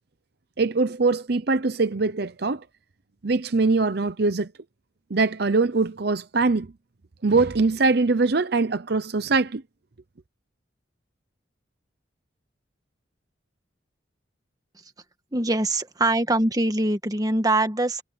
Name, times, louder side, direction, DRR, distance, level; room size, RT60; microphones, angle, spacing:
voice 1, 0.6-2.6 3.2-4.5 5.1-6.7 7.2-9.6, right 3 dB, 55° right, 0.7 m, -22 dB
voice 2, 15.3-18.0, right 2 dB, 20° right, 1.5 m, -23 dB
head